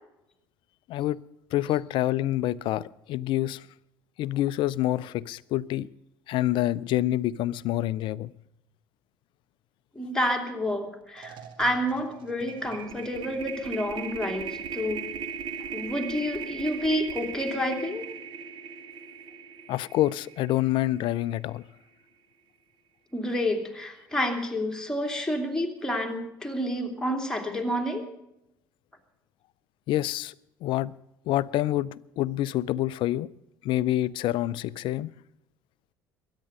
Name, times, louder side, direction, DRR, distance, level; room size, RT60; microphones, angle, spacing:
voice 1, 0.9-1.2 1.5-3.7 4.2-5.9 6.3-8.3 19.7-21.6 29.9-30.3 30.6-30.9 31.3-33.3 33.6-35.1, left 14 dB, 50° left, 0.5 m, -27 dB
voice 2, 9.9-15.1 15.7-18.0 23.1-28.0, left 1 dB, 5° left, 2.9 m, -29 dB
sound 1, 10.7-10.8 11.1-21.4, right 6 dB, 45° right, 2.1 m, -38 dB
22.0 x 9.8 x 5.4 m
figure-of-eight pair, 60°, 11 cm